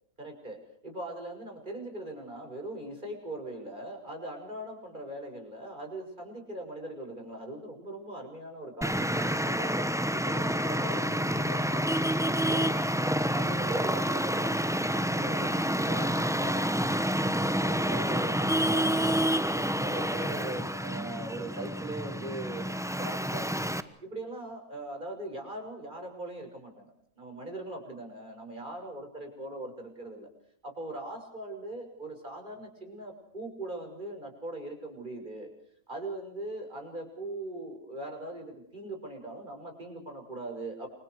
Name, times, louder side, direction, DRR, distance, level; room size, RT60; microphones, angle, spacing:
voice 1, 0.2-0.6 0.8-9.9 10.1-12.9 13.3-14.9 15.1-18.3 18.7-22.6 23.0-23.8 24.0-30.3 30.6-35.5 35.9-40.9, right 1 dB, 30° right, 3 dB, 6.6 m, -40 dB
Traffic noise roadway noise, 8.8-23.8, equal, ahead, 1.0 m, -28 dB
30.0 x 25.5 x 4.8 m, 0.67 s
omnidirectional pair, 1.5 m